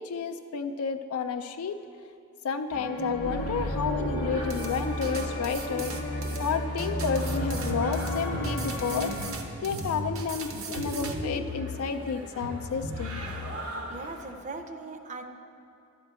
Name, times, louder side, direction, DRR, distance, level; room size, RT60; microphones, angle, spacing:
voice 1, 0.0-1.8 2.4-9.1 9.6-13.2, left 6 dB, 80° left, 6 dB, 0.4 m, -31 dB
sound 1, 2.7-9.3, equal, 45° left, 0.7 m, -32 dB
sound 2, 3.2-14.3, equal, 85° right, 1.3 m, -37 dB
sound 3, 4.5-11.2, right 5 dB, 70° right, 0.9 m, -40 dB
voice 2, 13.9-15.2, right 3 dB, 35° right, 6 dB, 0.6 m, -39 dB
11.5 x 4.4 x 8.0 m, 2.7 s
head